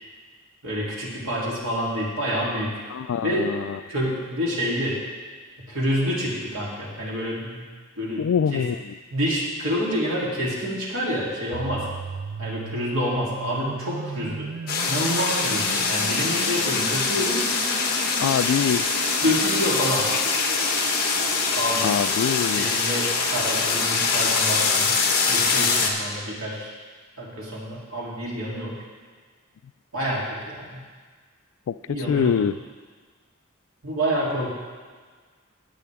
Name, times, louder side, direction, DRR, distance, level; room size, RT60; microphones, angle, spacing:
voice 1, 0.6-2.7 3.2-3.5 3.9-5.0 5.7-7.6 8.0-8.7 9.1-11.9 12.4-14.5 14.9-17.4 19.2-20.1 21.5-22.0 22.5-24.9 25.3-26.7 27.2-28.7 29.9-30.8 31.9-32.5 33.8-34.5, equal, 75° right, -5 dB, 3.2 m, -27 dB
voice 2, 8.2-8.7 18.2-18.8 21.8-22.7 32.1-32.5, left 7 dB, 70° left, 16 dB, 0.3 m, -23 dB
sound 1, 11.5-21.5, right 6 dB, 50° right, 0.4 m, -36 dB
sound 2, 14.7-25.9, left 4 dB, 50° left, 1.4 m, -23 dB
18.0 x 7.6 x 3.6 m, 1.5 s
head